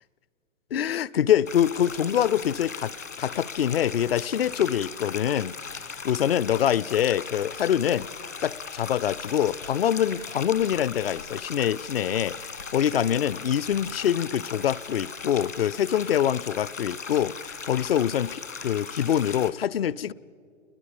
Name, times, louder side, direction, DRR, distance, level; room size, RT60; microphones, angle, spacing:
voice 1, 0.7-2.9 3.2-8.1 8.4-20.1, left 10 dB, 55° left, 0.5 m, -25 dB
sound 1, 1.5-19.5, left 5 dB, 80° left, 1.7 m, -38 dB
28.5 x 21.0 x 7.0 m
figure-of-eight pair, 110°, 37 cm